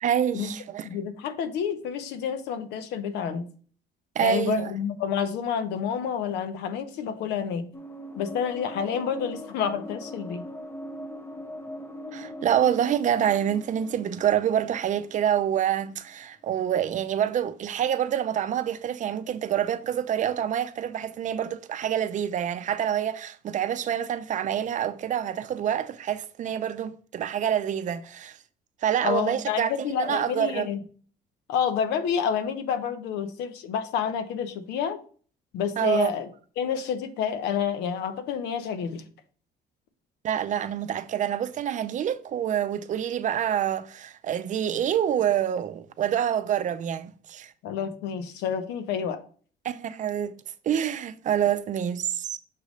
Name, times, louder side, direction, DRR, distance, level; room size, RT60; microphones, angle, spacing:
voice 1, 0.0-0.9 4.2-4.7 12.1-28.4 28.8-30.7 35.8-36.1 40.2-47.5 49.6-50.4 50.7-52.4, right 9 dB, 45° right, 0.6 m, -27 dB
voice 2, 0.8-3.5 4.2-7.7 8.2-10.4 29.0-30.8 31.5-35.0 35.5-36.3 36.6-39.0 47.6-49.2, left 8 dB, 85° left, 0.8 m, -29 dB
sound 1, 7.7-15.8, equal, 15° left, 0.8 m, -41 dB
6.6 x 3.1 x 5.2 m
cardioid pair, 110°, 17 cm